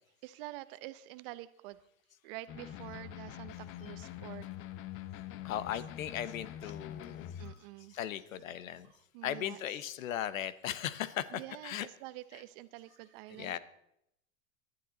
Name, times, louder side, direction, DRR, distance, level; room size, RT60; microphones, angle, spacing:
voice 1, 0.2-1.8 2.2-4.5 7.4-8.0 8.5-9.6 11.3-13.6, right 18 dB, 45° right, 15 dB, 0.8 m, -47 dB
sound 1, 2.5-7.5, left 11 dB, 30° left, 0.8 m, -44 dB
voice 2, 5.4-7.3 7.9-8.9 9.2-11.9 12.3-12.4 13.4-13.6, left 11 dB, 75° left, 16 dB, 1.2 m, -37 dB
19.5 x 12.0 x 4.0 m, 0.77 s
hypercardioid pair, 140°, 40 cm